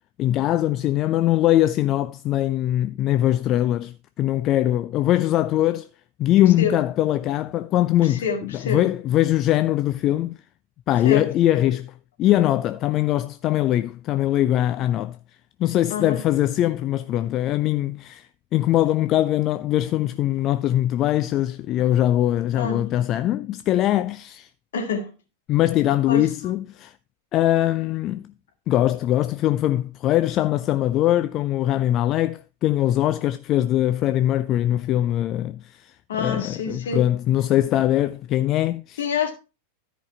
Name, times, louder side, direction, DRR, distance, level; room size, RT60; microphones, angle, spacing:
voice 1, 0.2-5.9 6.2-8.2 8.6-10.3 10.9-11.9 12.2-15.2 15.6-18.3 18.5-24.5 25.5-26.9 27.3-28.2 28.7-39.0, left 13 dB, 35° left, 0.4 m, -21 dB
voice 2, 8.0-8.8 11.0-11.3 15.9-16.2 22.6-22.9 24.7-25.1 26.1-26.2 36.1-37.0 39.0-39.3, left 5 dB, 60° left, 2.3 m, -27 dB
13.0 x 5.1 x 4.4 m
figure-of-eight pair, 90°, 0 cm